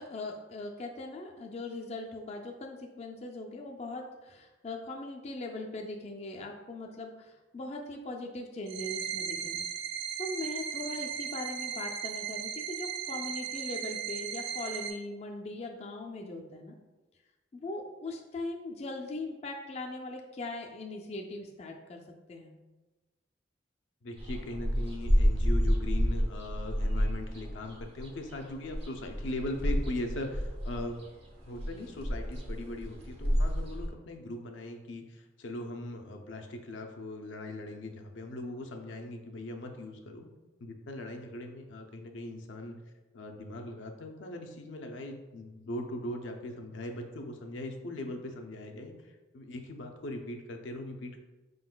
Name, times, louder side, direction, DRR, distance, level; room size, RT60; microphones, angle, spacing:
voice 1, 0.0-9.7 10.2-16.8 17.5-22.0 22.3-22.6, left 2 dB, 35° left, 1 dB, 0.3 m, -40 dB
sound 1, 8.7-14.9, right 8 dB, 70° right, 0.4 m, -37 dB
voice 2, 24.0-30.9 31.5-40.3 40.6-42.8 43.1-51.2, left 1 dB, 85° left, 3 dB, 0.5 m, -40 dB
sound 2, 24.2-33.9, equal, 30° right, 0.7 m, -29 dB
5.0 x 3.8 x 2.2 m, 1.1 s
head